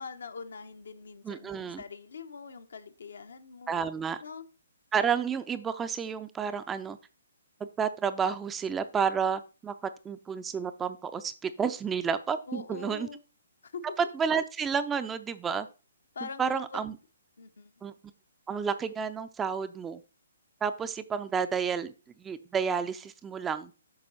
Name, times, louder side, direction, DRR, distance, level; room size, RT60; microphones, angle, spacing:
voice 1, 0.0-3.8 4.2-4.5 12.5-13.2 13.6-13.9 16.1-17.0 17.4-17.7, left 5 dB, 65° left, 9 dB, 1.0 m, -43 dB
voice 2, 1.2-1.8 3.7-4.2 4.9-7.0 7.6-13.1 14.0-15.7 16.2-16.9 17.8-17.9 18.5-20.0 20.6-21.9 22.2-23.7, right 6 dB, 15° right, 11 dB, 0.5 m, -31 dB
8.8 x 6.0 x 4.1 m, 0.33 s
figure-of-eight pair, 130°, 0 cm